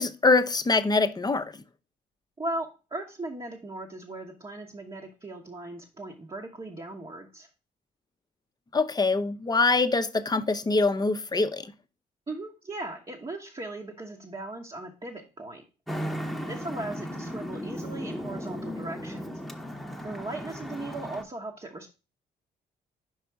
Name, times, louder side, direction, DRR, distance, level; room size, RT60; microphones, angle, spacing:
voice 1, 0.0-1.6 8.7-11.7, left 3 dB, 20° left, 0.7 m, -24 dB
voice 2, 2.4-7.5 12.3-15.6 16.4-19.4 20.0-21.9, right 2 dB, 25° right, 1.1 m, -38 dB
Traffic noise roadway noise, 15.9-21.2, equal, ahead, 1.0 m, -36 dB
5.0 x 4.8 x 4.5 m
supercardioid pair, 60°, 19 cm